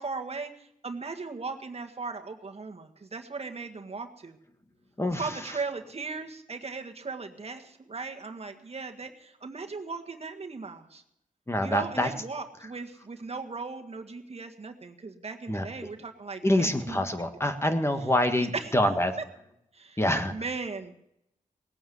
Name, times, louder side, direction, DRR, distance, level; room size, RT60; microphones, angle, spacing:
voice 1, 0.0-4.4 5.2-11.0 11.6-17.0 18.0-18.1 18.4-18.7 19.2-19.3 19.7-20.0 20.3-21.0, right 4 dB, 45° right, 4 dB, 1.7 m, -37 dB
voice 2, 11.5-12.1 15.5-15.6 16.4-19.1 20.0-20.3, left 1 dB, 20° left, 7 dB, 1.8 m, -25 dB
19.0 x 8.9 x 8.0 m, 0.77 s
cardioid pair, 55°, 14 cm